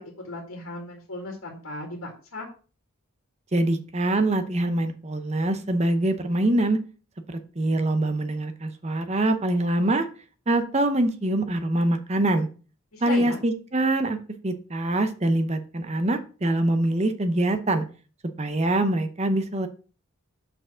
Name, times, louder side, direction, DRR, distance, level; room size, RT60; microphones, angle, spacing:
voice 1, 0.0-2.5 12.9-13.4, left 2 dB, 85° left, 0 dB, 2.0 m, -36 dB
voice 2, 3.5-6.8 7.3-10.1 10.5-12.5 13.0-14.2 14.4-17.8 18.4-19.7, right 1 dB, 30° right, 9 dB, 0.8 m, -24 dB
6.3 x 4.7 x 6.2 m, 0.37 s
head